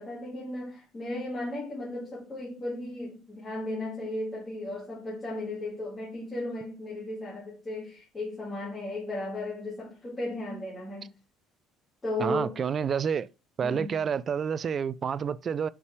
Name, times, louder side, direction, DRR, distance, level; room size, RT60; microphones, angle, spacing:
voice 1, 0.0-11.1 12.0-12.7 13.6-14.0, left 1 dB, 15° left, 2.2 m, -35 dB
voice 2, 12.2-13.3 13.6-15.7, right 7 dB, 30° right, 0.3 m, -29 dB
5.6 x 4.8 x 4.6 m
cardioid pair, 155°, 0 cm